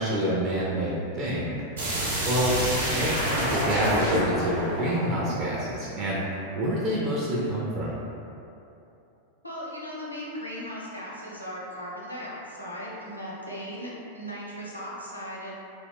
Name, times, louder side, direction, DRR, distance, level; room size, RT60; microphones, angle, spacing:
voice 1, 0.0-1.6 2.2-2.6 2.9-6.2 6.5-8.0, equal, 40° right, -6 dB, 0.4 m, -27 dB
sound 1, 1.8-6.5, right 1 dB, 70° right, 0.7 m, -28 dB
voice 2, 9.4-15.5, equal, 90° left, -6 dB, 0.5 m, -37 dB
2.1 x 2.0 x 3.3 m, 2.7 s
figure-of-eight pair, 90°, 0 cm